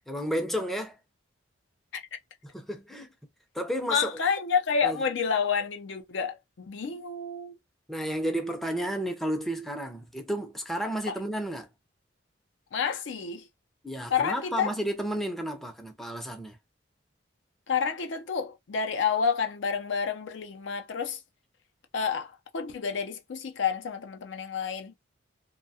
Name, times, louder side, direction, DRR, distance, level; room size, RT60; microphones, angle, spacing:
voice 1, 0.1-1.0 2.4-3.1 3.5-4.2 4.8-5.0 7.9-11.7 13.8-16.6, equal, ahead, 0.4 m, -32 dB
voice 2, 3.9-7.6 11.1-11.2 12.7-13.4 14.1-14.7 17.7-21.2 21.9-24.9, left 6 dB, 70° left, 0.5 m, -29 dB
2.6 x 2.2 x 2.7 m
head